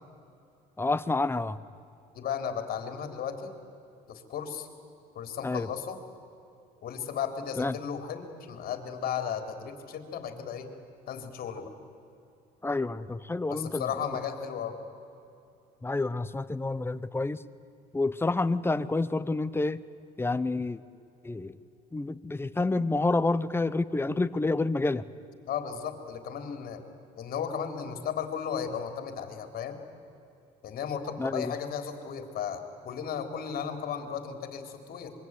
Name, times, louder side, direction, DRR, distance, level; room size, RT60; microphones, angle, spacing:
voice 1, 0.8-1.6 5.4-5.7 7.6-7.7 12.6-13.8 15.8-17.4 17.9-19.8 20.2-20.8 21.2-21.5 21.9-25.0 31.2-31.5, left 3 dB, 15° left, 14 dB, 1.0 m, -28 dB
voice 2, 2.1-3.5 4.1-4.7 5.2-6.0 6.8-10.7 11.1-11.7 13.5-14.7 25.5-26.8 27.2-29.8 30.6-35.1, left 7 dB, 60° left, 7 dB, 3.7 m, -35 dB
25.0 x 23.5 x 9.7 m, 2.7 s
cardioid pair, 110°, 17 cm